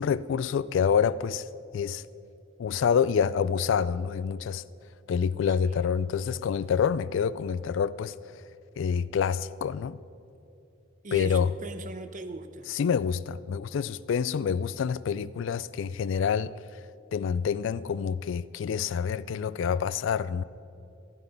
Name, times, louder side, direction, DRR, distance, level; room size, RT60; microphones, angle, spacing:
voice 1, 0.0-1.4 1.7-2.0 2.6-4.6 5.1-8.1 8.8-10.0 11.1-11.5 12.7-16.5 17.1-20.4, left 7 dB, 60° left, 0.3 m, -27 dB
voice 2, 5.3-5.8 11.0-12.7, right 2 dB, 40° right, 0.7 m, -40 dB
15.0 x 12.0 x 5.3 m
head